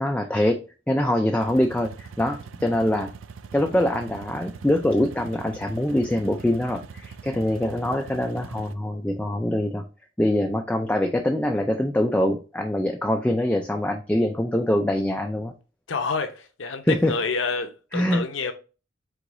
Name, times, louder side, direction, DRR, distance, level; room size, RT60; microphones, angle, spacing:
voice 1, 0.0-3.1 3.5-9.8 10.2-15.5 16.8-17.1 17.9-18.5, left 1 dB, 5° left, 0.3 m, -24 dB
sound 1, 1.4-8.7, right 5 dB, 80° right, 0.4 m, -42 dB
voice 2, 15.9-18.5, left 4 dB, 65° left, 0.8 m, -28 dB
4.7 x 3.8 x 2.6 m
head